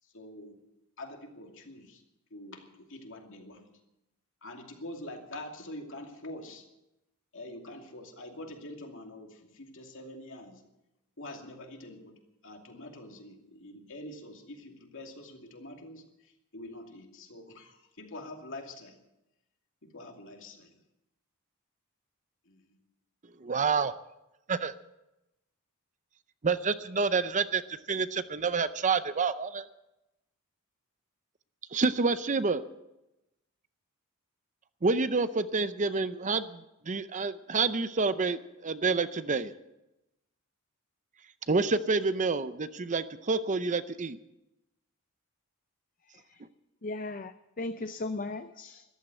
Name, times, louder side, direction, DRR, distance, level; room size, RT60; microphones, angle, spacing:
voice 1, 0.1-0.6 1.0-2.0 2.3-3.7 4.4-6.7 7.3-10.6 11.2-19.0 19.8-20.8 22.5-22.8, left 1 dB, 60° left, 3 dB, 2.5 m, -45 dB
voice 2, 23.4-23.9 24.5-24.7 26.4-29.7 31.7-32.6 34.8-36.6 36.9-39.5 41.5-44.2, right 4 dB, 35° right, 13 dB, 0.6 m, -28 dB
voice 3, 46.8-48.8, left 2 dB, 40° left, 10 dB, 0.6 m, -37 dB
14.0 x 12.0 x 7.9 m, 0.92 s
head